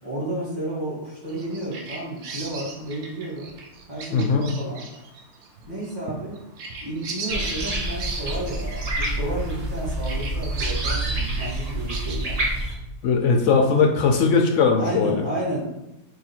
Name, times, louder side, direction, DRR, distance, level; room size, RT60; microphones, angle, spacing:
voice 1, 0.0-3.5 3.9-4.8 5.7-6.3 6.8-12.4 14.8-15.6, right 1 dB, 15° right, -7 dB, 1.4 m, -31 dB
Bird vocalization bird call bird song, 1.3-9.7 10.0-12.2, right 4 dB, 70° right, 1.1 m, -37 dB
voice 2, 4.1-4.5 13.0-15.2, left 5 dB, 70° left, 3 dB, 0.7 m, -19 dB
sound 1, 7.3-12.7, right 1 dB, 35° right, 0.6 m, -27 dB
3.7 x 2.7 x 4.2 m, 0.88 s
omnidirectional pair, 1.7 m